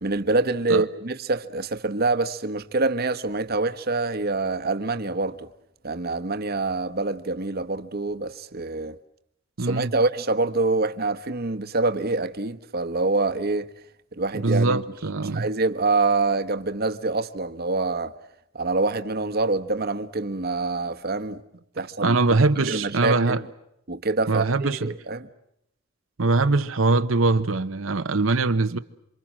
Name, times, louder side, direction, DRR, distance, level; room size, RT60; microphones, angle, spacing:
voice 1, 0.0-5.5 5.8-9.0 9.6-13.7 14.1-14.8 15.3-18.1 18.5-21.4 21.7-23.4 23.9-25.3, right 3 dB, 50° right, 1.2 m, -26 dB
voice 2, 9.6-9.9 14.3-15.5 22.0-23.4 24.3-24.9 26.2-28.8, right 3 dB, 85° right, 1.0 m, -22 dB
27.5 x 25.5 x 7.4 m
head